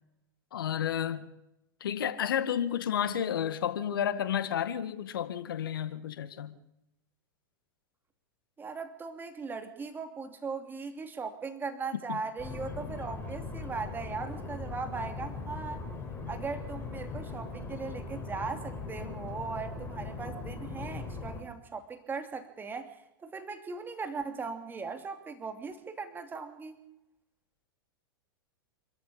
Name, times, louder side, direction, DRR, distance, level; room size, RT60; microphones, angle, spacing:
voice 1, 0.5-1.3 1.8-6.6 12.1-12.2, left 9 dB, 70° left, 1.9 m, -31 dB
voice 2, 8.6-15.8 16.3-23.0 23.2-26.8, right 4 dB, 15° right, 2.8 m, -39 dB
sound 1, 12.4-21.4, left 3 dB, 20° left, 5.3 m, -40 dB
27.5 x 13.5 x 8.7 m
hypercardioid pair, 100°, 12 cm